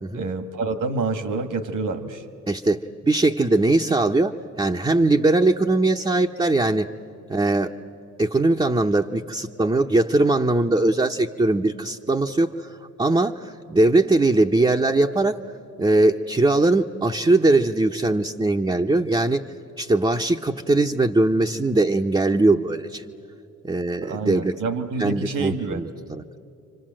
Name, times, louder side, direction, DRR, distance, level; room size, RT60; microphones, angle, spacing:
voice 1, 0.1-2.2 24.0-25.8, right 3 dB, 65° right, 9 dB, 2.0 m, -27 dB
voice 2, 2.5-6.9 7.3-7.7 8.2-15.4 15.8-19.4 19.8-23.0 23.6-24.5 25.0-26.2, right 2 dB, 15° right, 1 dB, 0.9 m, -21 dB
29.5 x 25.5 x 7.6 m, 2.7 s
supercardioid pair, 60°, 34 cm